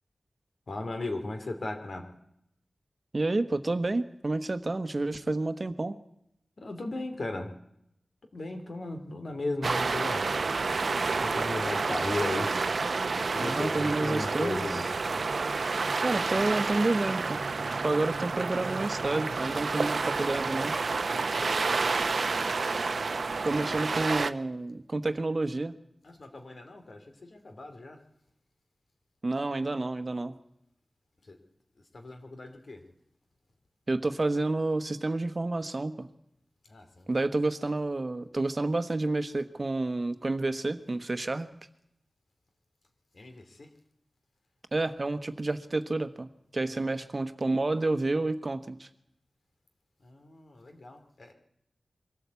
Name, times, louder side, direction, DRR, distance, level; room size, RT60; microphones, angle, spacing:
voice 1, 0.7-2.1 6.6-7.5 8.3-10.3 11.2-12.5 13.3-14.9 23.5-23.9 26.0-28.0 31.2-31.4 31.8-32.8 36.6-37.4 43.1-43.7 46.7-47.0 50.0-51.3, left 2 dB, 70° left, 5 dB, 2.8 m, -37 dB
voice 2, 3.1-6.0 13.4-14.6 16.0-17.4 17.8-20.7 23.4-25.8 29.2-30.4 33.9-36.1 37.1-41.5 44.7-48.9, right 2 dB, 45° right, 10 dB, 1.2 m, -29 dB
sound 1, 9.6-24.3, right 4 dB, 75° right, 0.7 m, -29 dB
23.0 x 13.5 x 8.3 m, 0.79 s
wide cardioid pair, 60°, 0 cm